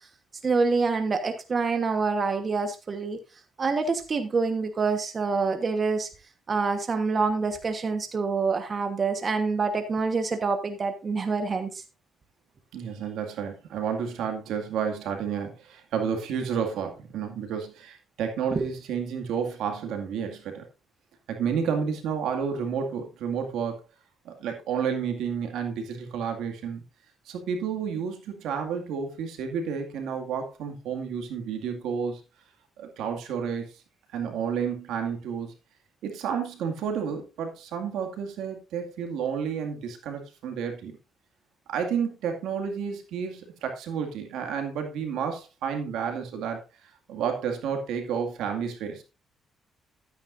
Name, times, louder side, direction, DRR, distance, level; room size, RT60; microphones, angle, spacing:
voice 1, 0.4-3.2 3.6-6.1 6.5-11.8 18.5-18.7, right 4 dB, 40° right, 7 dB, 1.3 m, -26 dB
voice 2, 12.7-20.6 21.3-23.8 24.2-26.8 27.3-32.2 32.8-33.7 34.1-35.5 36.0-41.0 41.7-46.6 47.1-49.0, right 7 dB, 85° right, 5 dB, 2.1 m, -31 dB
12.5 x 9.3 x 2.6 m, 0.29 s
cardioid pair, 90°, 0 cm